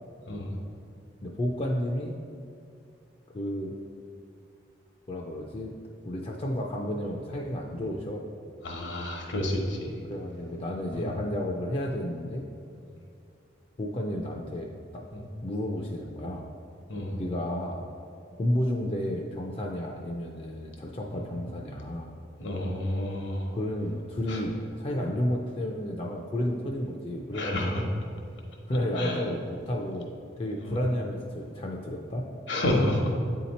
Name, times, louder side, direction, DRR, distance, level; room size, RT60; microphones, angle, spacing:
voice 1, 1.2-2.2 3.3-3.7 5.1-5.7 6.0-8.3 10.0-12.5 13.8-15.0 15.4-16.5 17.2-17.8 18.4-22.1 23.5-27.9 28.7-32.3, left 1 dB, 30° left, 0 dB, 0.3 m, -32 dB
voice 2, 8.6-10.0 10.9-11.1 15.1-15.2 16.9-17.2 21.1-21.2 22.4-23.6 24.3-24.4 27.3-27.9 29.0-29.2 30.6-30.8 32.5-33.1, left 1 dB, 75° left, 0 dB, 0.9 m, -30 dB
8.3 x 2.8 x 4.1 m, 2.4 s
head